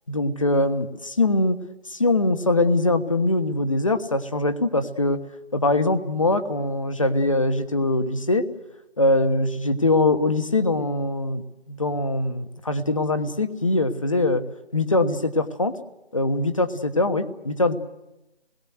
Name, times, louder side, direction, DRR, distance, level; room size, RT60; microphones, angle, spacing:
voice 1, 0.1-1.6 1.9-5.2 5.5-8.4 9.0-14.4 14.7-15.7 16.1-17.7, left 2 dB, 30° left, 9 dB, 1.3 m, -22 dB
28.0 x 21.0 x 8.0 m, 0.97 s
figure-of-eight pair, 165°, 32 cm